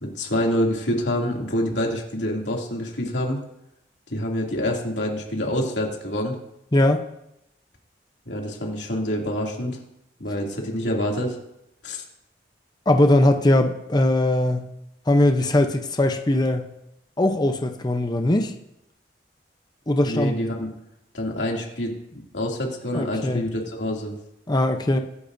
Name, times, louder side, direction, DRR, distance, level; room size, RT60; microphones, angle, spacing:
voice 1, 0.0-3.4 4.1-6.4 8.3-9.8 10.2-11.4 11.8-12.0 20.0-20.7 21.1-21.9 22.3-24.1, equal, 80° left, -1 dB, 2.7 m, -26 dB
voice 2, 6.7-7.0 12.9-14.7 15.1-16.7 17.2-18.5 19.9-20.3 22.9-23.4 24.5-25.0, left 1 dB, 25° left, 5 dB, 0.7 m, -20 dB
24.0 x 10.5 x 2.7 m, 0.83 s
head